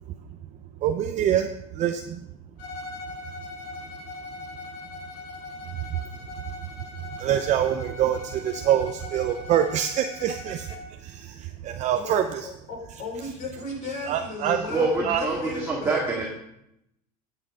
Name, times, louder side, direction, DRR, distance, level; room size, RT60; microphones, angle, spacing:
voice 1, 0.8-2.2 5.9-6.0 7.2-12.5 14.0-14.6 15.0-15.2, right 10 dB, 40° right, 6 dB, 0.6 m, -25 dB
Bowed string instrument, 2.6-10.9, left 3 dB, 85° left, 2.7 m, -40 dB
voice 2, 11.9-16.0, left 3 dB, 45° left, -1 dB, 4.9 m, -35 dB
voice 3, 14.7-16.3, right 3 dB, 10° right, -5 dB, 2.2 m, -26 dB
14.0 x 7.8 x 3.8 m, 0.80 s
supercardioid pair, 130°, 19 cm